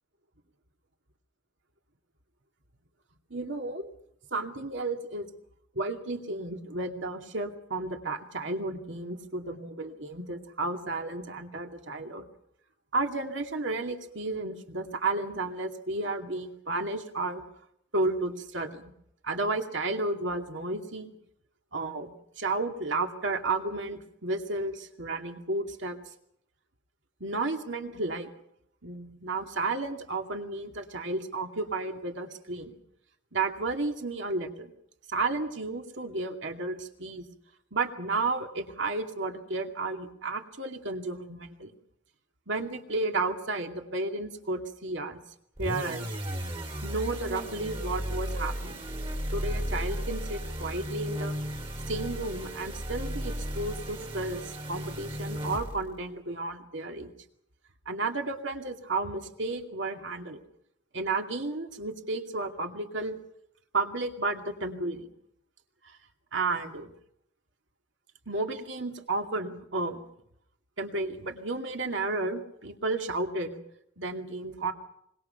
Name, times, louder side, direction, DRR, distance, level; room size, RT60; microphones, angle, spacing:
voice 1, 3.3-3.9 4.3-5.3 5.7-12.3 12.9-17.4 17.9-18.9 19.2-21.1 21.7-22.1 22.4-26.0 27.2-28.3 28.8-32.8 33.3-34.7 35.1-37.3 37.7-41.7 42.5-45.2 45.6-46.1 46.8-48.8 49.3-51.3 51.9-57.1 57.9-60.4 60.9-63.2 63.7-65.1 65.8-66.0 66.3-66.9 68.3-70.0 70.8-73.5 74.0-74.7, right 3 dB, 65° right, 4 dB, 2.4 m, -32 dB
sound 1, 45.6-56.0, equal, 30° right, 2.4 m, -35 dB
25.5 x 22.5 x 5.8 m, 0.73 s
head